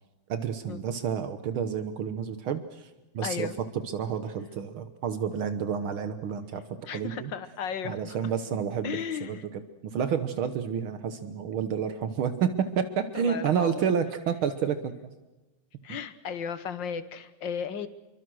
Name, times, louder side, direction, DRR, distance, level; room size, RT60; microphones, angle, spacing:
voice 1, 0.3-3.5 3.9-6.6 6.9-7.3 7.8-15.1, right 7 dB, 75° right, 10 dB, 1.9 m, -30 dB
voice 2, 3.2-3.6 6.9-8.2 8.8-9.4 13.1-13.9 15.8-17.9, left 7 dB, 60° left, 12 dB, 1.9 m, -35 dB
27.0 x 24.0 x 6.3 m, 1.1 s
omnidirectional pair, 2.4 m